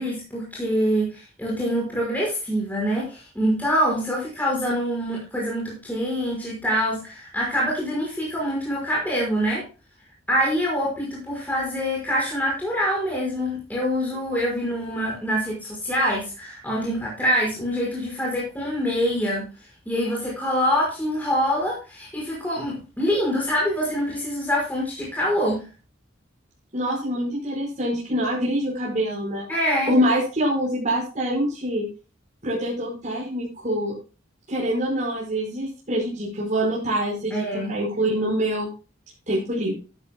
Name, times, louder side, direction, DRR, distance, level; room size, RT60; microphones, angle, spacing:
voice 1, 0.0-9.6 10.3-19.5 19.9-25.6 29.5-29.9 37.3-37.7, equal, 10° left, -4 dB, 5.3 m, -25 dB
voice 2, 26.7-29.5 29.9-31.8 32.4-34.0 34.5-38.7 39.3-39.7, equal, 40° right, -4 dB, 5.1 m, -25 dB
12.5 x 12.0 x 2.2 m, 0.33 s
head